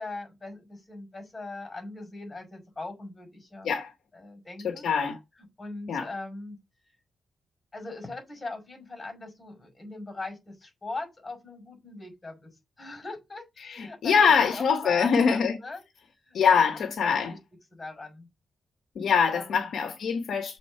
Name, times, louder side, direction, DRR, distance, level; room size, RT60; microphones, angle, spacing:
voice 1, 0.0-3.7 4.1-4.9 5.6-6.6 7.7-12.5 12.8-15.8 16.3-16.4 17.3-17.4 17.7-18.3 19.3-19.7, left 2 dB, 25° left, 5.6 m, -40 dB
voice 2, 4.6-5.2 5.9-6.1 13.6-15.6 16.3-17.4 18.9-20.6, left 6 dB, 75° left, 1.1 m, -24 dB
7.0 x 3.7 x 5.5 m
cardioid pair, 75°, 0 cm